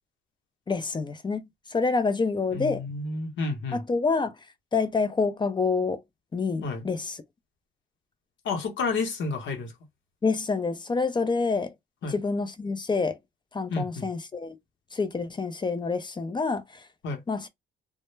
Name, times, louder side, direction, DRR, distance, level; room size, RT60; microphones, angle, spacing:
voice 1, 0.7-1.4 1.7-2.8 3.7-4.3 4.7-6.0 6.3-7.2 10.2-11.7 12.0-13.2 13.5-14.6 14.9-16.8 17.3-17.5, left 4 dB, 25° left, 0.4 m, -27 dB
voice 2, 2.5-3.8 6.6-6.8 8.4-9.7 12.0-12.2 13.7-14.1 17.0-17.2, left 4 dB, 70° left, 0.9 m, -30 dB
2.2 x 2.1 x 3.1 m
cardioid pair, 90°, 20 cm